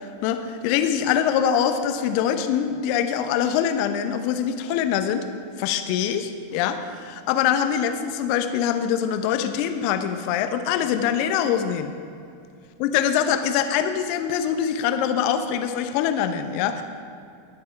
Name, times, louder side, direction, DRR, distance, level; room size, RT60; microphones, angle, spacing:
voice 1, 0.2-5.2 5.6-11.9 12.8-16.8, left 9 dB, 45° left, 8 dB, 0.9 m, -24 dB
19.5 x 6.6 x 4.6 m, 2.5 s
figure-of-eight pair, 90°, 0 cm